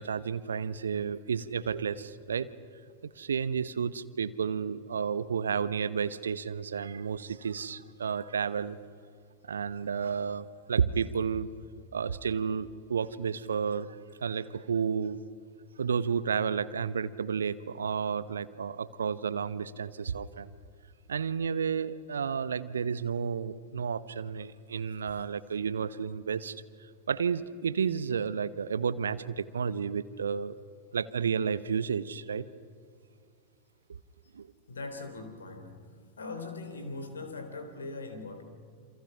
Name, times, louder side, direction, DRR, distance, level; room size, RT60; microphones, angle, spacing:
voice 1, 0.0-2.5 3.2-8.8 9.5-11.5 11.9-15.2 15.8-20.5 21.1-26.6 27.1-30.6 30.9-32.5 33.9-34.0 34.3-34.5, right 6 dB, 70° right, 16 dB, 0.9 m, -31 dB
voice 2, 34.7-35.8 36.2-38.4, left 3 dB, 70° left, 7 dB, 3.7 m, -40 dB
28.5 x 27.0 x 5.7 m, 2.1 s
figure-of-eight pair, 90°, 0 cm